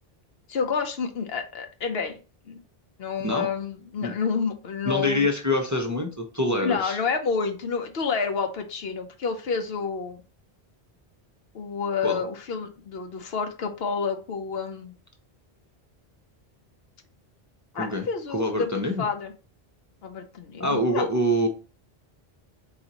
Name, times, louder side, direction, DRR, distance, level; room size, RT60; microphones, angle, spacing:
voice 1, 0.5-2.2 2.5-2.6 3.0-5.3 6.6-10.2 11.5-14.9 17.7-19.3 20.0-21.1, left 5 dB, 75° left, 6 dB, 1.0 m, -29 dB
voice 2, 4.9-7.0 12.0-12.2 17.7-19.0 20.6-21.5, left 1 dB, 20° right, 2 dB, 0.5 m, -25 dB
4.1 x 3.8 x 2.9 m, 0.34 s
omnidirectional pair, 1.0 m